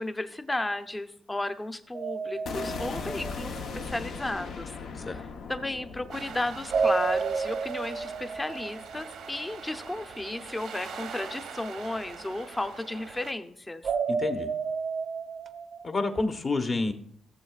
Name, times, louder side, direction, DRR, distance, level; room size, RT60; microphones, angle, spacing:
voice 1, 0.0-4.7 5.1-13.9, left 2 dB, 15° left, 9 dB, 0.6 m, -34 dB
sound 1, 1.9-4.0 6.7-9.6 13.8-16.1, right 5 dB, 55° right, 0.6 m, -31 dB
sound 2, 2.5-8.5, left 5 dB, 75° left, 0.9 m, -39 dB
sound 3, 6.1-13.3, right 6 dB, 80° right, 0.9 m, -43 dB
voice 2, 14.1-14.5 15.8-16.9, left 3 dB, 35° left, 7 dB, 1.0 m, -28 dB
16.0 x 7.2 x 2.4 m, 0.66 s
cardioid pair, 95°, 0 cm